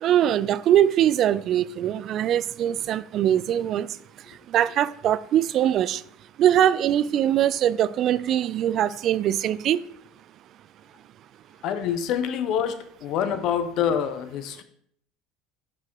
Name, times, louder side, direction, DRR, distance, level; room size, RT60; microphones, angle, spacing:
voice 1, 0.0-3.9 4.5-6.0 6.4-9.8, right 11 dB, 50° right, 0.3 m, -22 dB
voice 2, 11.6-14.6, left 8 dB, 60° left, 0.9 m, -26 dB
5.9 x 4.7 x 4.7 m
supercardioid pair, 120°, 0 cm